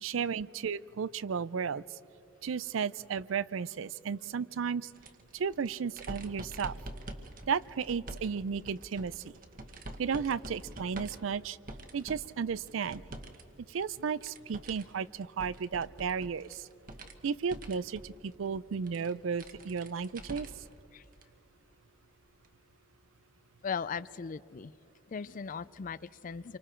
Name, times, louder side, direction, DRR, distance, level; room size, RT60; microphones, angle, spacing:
voice 1, 0.0-1.8 2.4-4.9 5.3-6.8 7.5-9.2 10.0-11.6 11.9-13.0 13.7-16.6 17.2-20.5, right 6 dB, 85° right, 19 dB, 0.4 m, -34 dB
sound 1, 4.9-13.4 13.7-20.7 21.1-21.2 22.4-22.5, right 1 dB, 45° right, 1.3 m, -46 dB
voice 2, 23.6-24.7 25.1-26.6, left 6 dB, 40° left, 18 dB, 0.4 m, -38 dB
28.0 x 24.5 x 4.5 m, 2.8 s
head